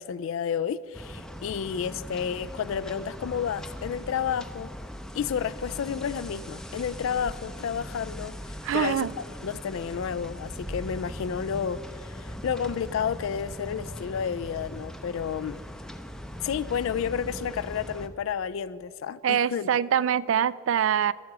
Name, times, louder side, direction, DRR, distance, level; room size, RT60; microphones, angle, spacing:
voice 1, 0.0-4.7 5.1-15.6 16.4-19.7, left 7 dB, 75° left, 16 dB, 0.3 m, -31 dB
sound 1, 0.9-18.1, equal, 5° left, 0.5 m, -40 dB
voice 2, 8.6-9.1 19.2-21.1, right 9 dB, 70° right, 20 dB, 0.3 m, -24 dB
13.0 x 13.0 x 4.8 m, 2.5 s
head